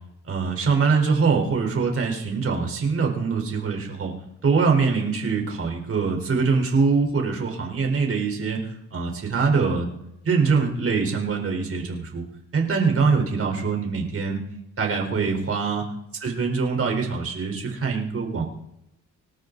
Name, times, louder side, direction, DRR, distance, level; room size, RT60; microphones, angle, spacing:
voice 1, 0.3-4.1 4.4-8.6 8.9-9.9 10.2-12.2 12.5-14.4 14.8-15.8 16.2-18.4, right 5 dB, 50° right, 2 dB, 4.6 m, -23 dB
26.5 x 12.5 x 4.1 m, 0.86 s
cardioid pair, 90°, 30 cm